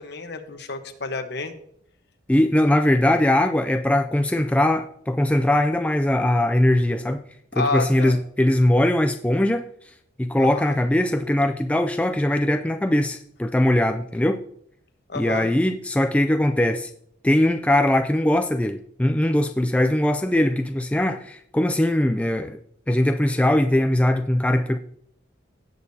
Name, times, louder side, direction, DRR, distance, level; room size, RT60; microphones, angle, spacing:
voice 1, 0.0-1.5 7.5-8.2 10.4-10.8 15.1-15.5, left 3 dB, 60° left, 1.1 m, -29 dB
voice 2, 2.3-7.2 7.5-9.7 10.2-14.4 15.1-16.9 17.2-22.6 22.9-24.8, left 1 dB, 5° left, 0.3 m, -21 dB
17.5 x 6.5 x 2.8 m
head